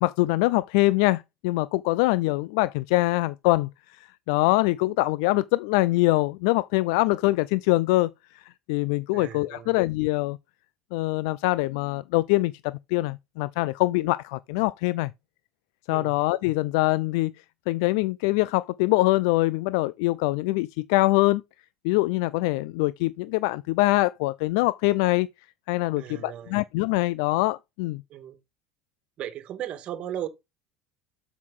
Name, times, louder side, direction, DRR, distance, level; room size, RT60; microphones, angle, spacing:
voice 1, 0.0-10.4 10.9-15.1 15.9-17.3 17.7-21.4 21.8-25.3 25.7-28.0, left 20 dB, 75° left, 0.3 m, -24 dB
voice 2, 9.1-9.8 15.9-16.1 26.0-26.6 28.1-28.4 29.2-30.3, right 11 dB, 45° right, 1.8 m, -36 dB
7.6 x 5.8 x 3.7 m
supercardioid pair, 115°, 3 cm